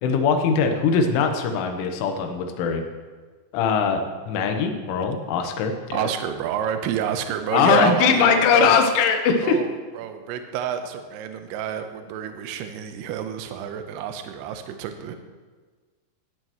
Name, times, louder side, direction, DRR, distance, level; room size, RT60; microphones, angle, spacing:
voice 1, 0.0-2.8 3.5-6.1 7.5-9.6, left 6 dB, 80° left, 5 dB, 3.5 m, -21 dB
voice 2, 5.9-8.8 9.4-15.2, right 8 dB, 80° right, 7 dB, 2.4 m, -29 dB
17.5 x 10.5 x 3.1 m, 1.4 s
omnidirectional pair, 5.6 m